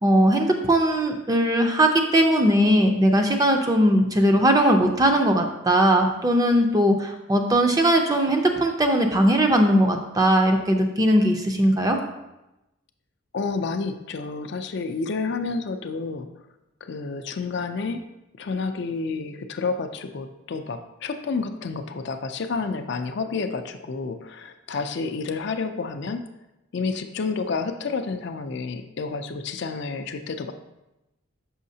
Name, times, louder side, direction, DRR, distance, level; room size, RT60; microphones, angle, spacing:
voice 1, 0.0-12.0, right 1 dB, 15° right, 4 dB, 0.4 m, -19 dB
voice 2, 13.3-16.3 16.8-18.0 18.4-26.3 26.7-30.5, left 4 dB, 55° left, 8 dB, 0.4 m, -30 dB
6.3 x 5.6 x 2.7 m, 0.95 s
head